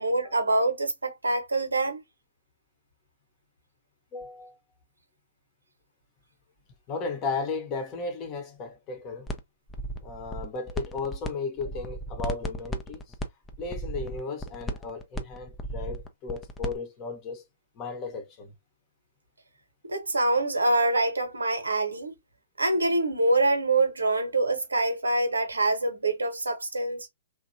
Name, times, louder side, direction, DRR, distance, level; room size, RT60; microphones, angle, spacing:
voice 1, 0.0-2.0 19.8-22.1 22.6-27.1, right 2 dB, 80° right, 1.0 m, -25 dB
voice 2, 4.1-4.6 6.9-9.3 10.0-13.0 13.6-17.4 17.8-18.5, left 4 dB, 30° left, 0.9 m, -35 dB
sound 1, 9.3-9.4 9.7-11.3 11.6-16.8, equal, 10° left, 0.5 m, -34 dB
3.0 x 2.3 x 2.6 m
figure-of-eight pair, 120°, 0 cm